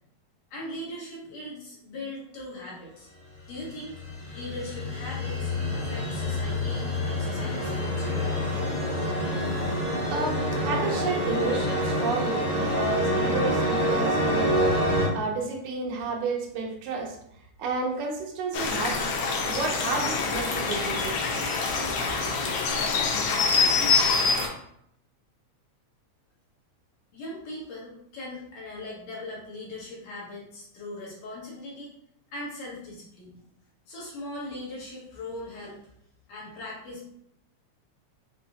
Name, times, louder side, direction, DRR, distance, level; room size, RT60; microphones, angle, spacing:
voice 1, 0.5-3.1 3.5-4.0 4.3-8.2 27.1-31.9 32.3-33.4 33.9-35.8 36.3-37.1, left 1 dB, 65° left, -5 dB, 2.0 m, -39 dB
sound 1, 3.5-15.1, equal, 40° left, 1.2 m, -27 dB
voice 2, 10.1-17.2 17.6-19.1 19.4-21.1, right 4 dB, 85° right, 1 dB, 2.1 m, -31 dB
sound 2, 18.5-24.5, left 4 dB, 85° left, 1.3 m, -25 dB
5.8 x 2.0 x 2.7 m, 0.71 s
omnidirectional pair, 3.3 m